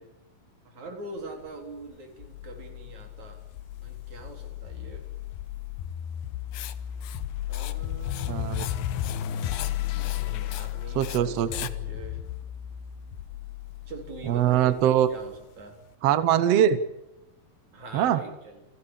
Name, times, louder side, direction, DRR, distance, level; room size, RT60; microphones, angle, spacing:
voice 1, 0.6-3.4 3.8-5.1 7.5-8.6 9.9-12.2 13.9-14.8 15.1-15.8 17.7-18.7, right 2 dB, 50° right, 4 dB, 5.0 m, -43 dB
sound 1, 2.2-15.4, left 12 dB, 85° left, 3.0 m, -34 dB
Writing, 6.5-6.7 7.0-7.2 7.5-7.7 8.0-8.8 9.0-9.2 9.5-9.7 10.0-10.2 10.5-10.7 11.0-11.2 11.5-11.7, left 13 dB, 70° left, 2.3 m, -39 dB
voice 2, 8.3-8.7 10.9-11.5 14.3-15.1 16.0-16.8 17.9-18.2, right 11 dB, 70° right, 13 dB, 1.5 m, -22 dB
29.0 x 13.0 x 8.6 m, 0.96 s
omnidirectional pair, 4.5 m